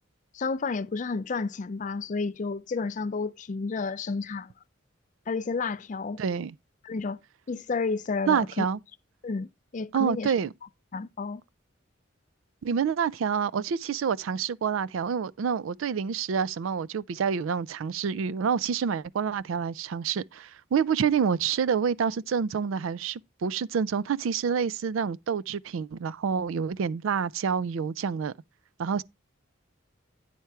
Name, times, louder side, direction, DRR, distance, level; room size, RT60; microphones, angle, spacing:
voice 1, 0.3-4.5 5.3-6.2 6.8-7.2 7.5-8.6 9.2-9.5 9.7-10.3 10.9-11.4, left 4 dB, 40° left, 0.4 m, -31 dB
voice 2, 6.2-6.5 8.3-8.8 9.9-10.5 12.6-28.3 28.8-29.0, right 6 dB, 80° right, 0.4 m, -28 dB
9.3 x 4.4 x 4.6 m
head